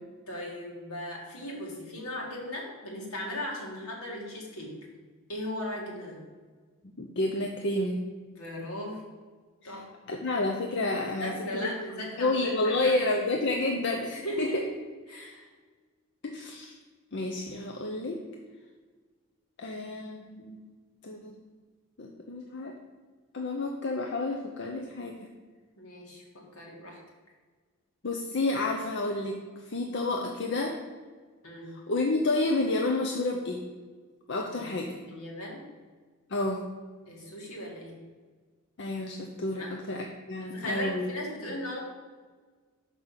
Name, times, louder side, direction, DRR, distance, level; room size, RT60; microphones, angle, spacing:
voice 1, 0.3-4.8 5.3-6.2 8.3-9.0 9.6-9.9 11.2-12.9 14.1-14.6 15.1-15.5 25.8-27.0 31.4-31.7 34.5-34.7 35.1-35.7 37.1-38.0 39.6-39.8 40.5-41.8, left 1 dB, 80° left, -2 dB, 2.1 m, -37 dB
voice 2, 6.8-8.0 9.6-9.7 10.1-11.7 12.2-14.6 16.2-16.8 17.1-18.2 19.6-20.6 21.0-21.4 22.0-22.7 23.3-25.2 28.0-30.8 31.7-33.6 34.3-34.9 36.3-36.7 38.8-41.1, left 2 dB, 55° left, 2 dB, 0.6 m, -30 dB
6.3 x 5.3 x 5.6 m, 1.4 s
head